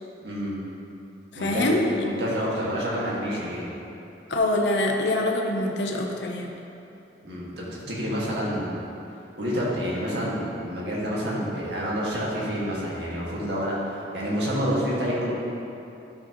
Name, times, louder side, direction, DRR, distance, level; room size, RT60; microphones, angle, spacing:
voice 1, 0.2-0.6 1.3-3.7 7.2-8.8 9.4-15.3, equal, 75° right, -6 dB, 1.9 m, -28 dB
voice 2, 1.4-1.9 4.3-6.5, left 1 dB, 80° left, 1 dB, 0.8 m, -24 dB
11.0 x 6.2 x 3.0 m, 2.8 s
head